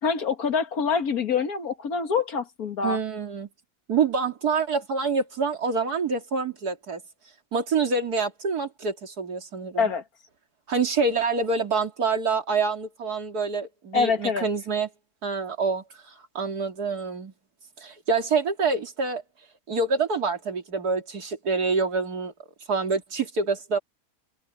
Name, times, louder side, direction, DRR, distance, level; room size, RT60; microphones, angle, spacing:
voice 1, 0.0-3.0 9.8-10.0 13.9-14.5, left 5 dB, 70° left, 2.1 m, -25 dB
voice 2, 2.8-3.5 3.9-7.0 7.5-9.9 10.7-14.9 15.2-17.3 17.8-19.2 19.7-22.3 22.7-23.8, right 4 dB, 80° right, 3.1 m, -26 dB
open air
omnidirectional pair, 1.6 m